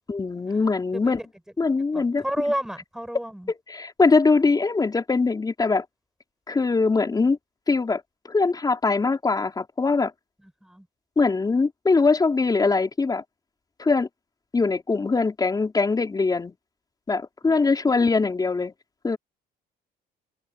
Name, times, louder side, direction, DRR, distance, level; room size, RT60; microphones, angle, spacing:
voice 1, 0.1-1.2 1.6-2.2 3.5-5.9 6.5-7.4 7.7-10.1 11.2-13.2 13.8-14.1 14.5-16.6 17.1-18.7 19.0-19.2, left 4 dB, 20° left, 5.3 m, -22 dB
voice 2, 1.9-3.5 10.6-10.9 17.4-17.9, equal, 5° right, 7.6 m, -31 dB
cardioid pair, 110°, 17 cm